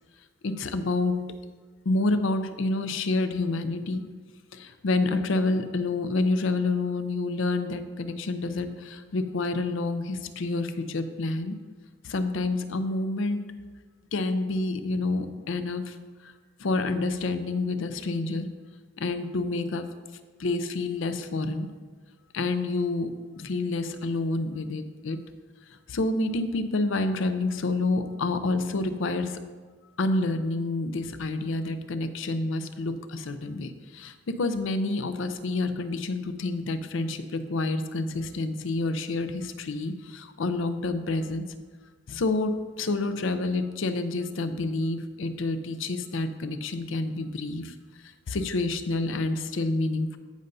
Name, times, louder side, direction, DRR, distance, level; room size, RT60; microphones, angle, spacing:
voice 1, 0.4-1.2 1.9-4.0 4.5-11.6 12.0-13.4 14.1-16.0 16.2-16.3 16.6-18.5 19.0-19.9 20.4-21.7 22.3-23.1 23.4-25.2 25.9-29.4 30.0-41.4 42.1-47.7 48.3-50.2, left 2 dB, 70° left, 9 dB, 0.5 m, -28 dB
13.5 x 5.3 x 2.7 m, 1.4 s
head